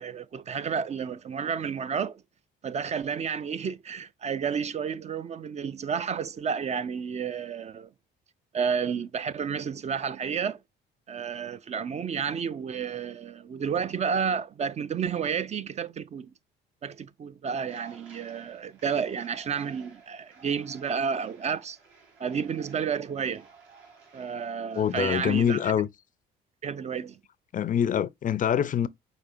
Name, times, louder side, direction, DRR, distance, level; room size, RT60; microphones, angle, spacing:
voice 1, 0.0-2.2 2.6-7.9 8.5-10.6 11.1-16.3 16.8-21.8 22.2-23.5 24.1-25.7 26.6-27.2, right 6 dB, 35° right, 0.4 m, -31 dB
sound 1, 17.7-25.7, right 5 dB, 80° right, 2.5 m, -53 dB
voice 2, 24.8-25.9 27.5-28.9, left 9 dB, 40° left, 0.4 m, -25 dB
5.0 x 4.1 x 2.5 m
cardioid pair, 85°, 20 cm